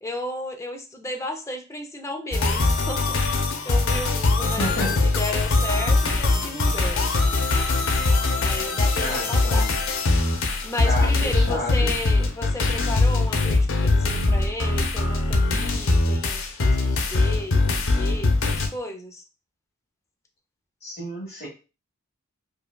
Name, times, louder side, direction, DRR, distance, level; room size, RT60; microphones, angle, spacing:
voice 1, 0.0-4.8 5.2-7.1 8.4-9.7 10.6-19.2, left 1 dB, 15° left, 3 dB, 0.5 m, -34 dB
sound 1, 2.3-18.7, left 3 dB, 65° left, 0.6 m, -22 dB
voice 2, 4.6-5.1 9.0-9.8 10.8-11.9 20.8-21.5, left 1 dB, 45° left, -6 dB, 1.3 m, -31 dB
5.2 x 2.3 x 2.2 m, 0.32 s
head